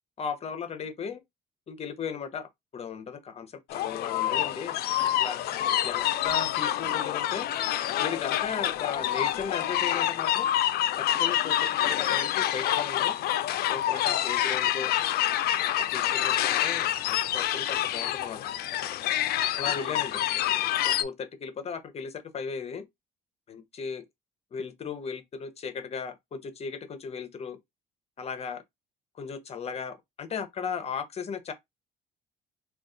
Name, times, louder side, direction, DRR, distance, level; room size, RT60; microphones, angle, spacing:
voice 1, 0.2-1.2 1.7-5.4 5.8-7.5 8.0-10.5 10.9-13.1 13.7-14.9 15.5-15.6 15.9-18.5 19.5-20.2 20.8-22.8 23.5-24.0 24.5-27.6 28.2-28.6 29.1-31.5, left 6 dB, 40° left, 0.7 m, -36 dB
sound 1, 3.7-21.0, left 12 dB, 65° left, 0.4 m, -27 dB
2.3 x 2.3 x 3.7 m
cardioid pair, 110°, 17 cm